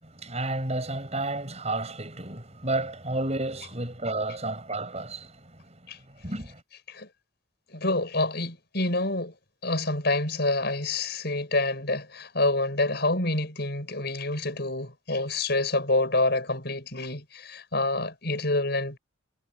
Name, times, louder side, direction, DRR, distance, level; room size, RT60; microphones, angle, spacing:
voice 1, 0.0-5.8 6.1-6.6, right 2 dB, 35° right, 7.7 m, -32 dB
voice 2, 7.7-9.3 9.6-19.0, left 2 dB, 55° left, 7.2 m, -27 dB
head